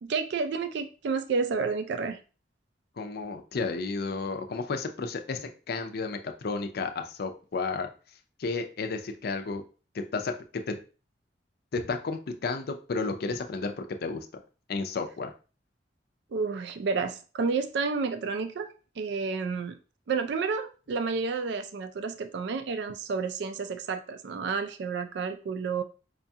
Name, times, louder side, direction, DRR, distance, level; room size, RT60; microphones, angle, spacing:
voice 1, 0.0-2.2 16.3-19.8 20.1-25.8, right 5 dB, 70° right, 8 dB, 0.4 m, -30 dB
voice 2, 3.0-7.9 8.4-9.6 9.9-10.8 11.7-14.3 14.7-15.3, left 4 dB, 60° left, 6 dB, 0.5 m, -32 dB
4.9 x 2.3 x 2.7 m, 0.35 s
head